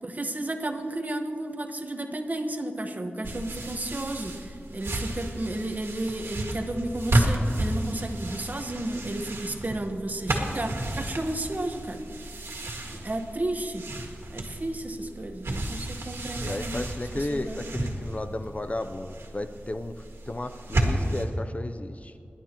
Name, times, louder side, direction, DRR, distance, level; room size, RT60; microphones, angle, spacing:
voice 1, 0.0-12.0 12.6-13.8 14.3-16.7 17.2-17.6, right 1 dB, 40° right, 5 dB, 1.2 m, -33 dB
sound 1, 3.2-21.2, right 1 dB, 90° right, 1.8 m, -32 dB
voice 2, 16.4-22.2, left 1 dB, 35° left, 8 dB, 0.6 m, -34 dB
28.0 x 11.5 x 3.0 m, 2.6 s
wide cardioid pair, 80°, 4 cm